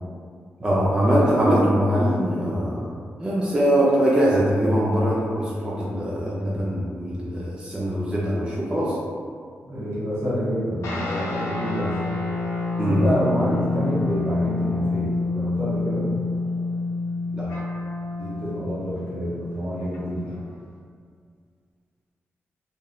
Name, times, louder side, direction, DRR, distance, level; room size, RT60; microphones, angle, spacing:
voice 1, 0.6-2.9 3.2-9.0 12.8-13.0 17.4-17.5, equal, 15° right, -6 dB, 0.4 m, -22 dB
voice 2, 9.7-12.1 12.9-16.1 18.2-20.4, equal, 65° right, -9 dB, 1.1 m, -28 dB
sound 1, 10.8-20.5, left 3 dB, 90° left, 0.5 m, -28 dB
2.8 x 2.1 x 2.3 m, 2.1 s
wide cardioid pair, 105°, 5 cm